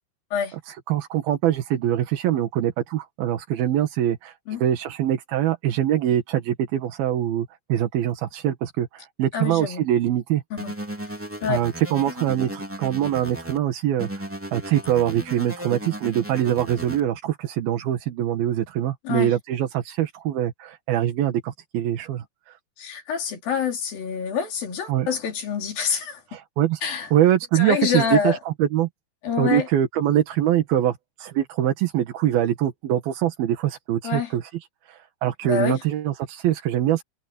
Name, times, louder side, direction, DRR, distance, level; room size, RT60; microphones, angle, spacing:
voice 1, 0.5-4.3 4.6-10.4 11.5-14.2 14.5-22.6 24.9-25.1 26.3-26.8 27.1-28.9 29.4-34.4 34.9-37.0, right 11 dB, 85° right, 3.4 m, -23 dB
voice 2, 9.3-9.8 10.5-10.7 11.4-11.6 19.0-19.3 22.8-26.2 26.8-27.1 27.6-28.4 29.2-29.7 34.0-34.3 35.4-35.8, left 6 dB, 75° left, 5.1 m, -26 dB
sound 1, 10.6-13.6 14.0-17.0, right 1 dB, 5° right, 2.6 m, -35 dB
omnidirectional pair, 4.2 m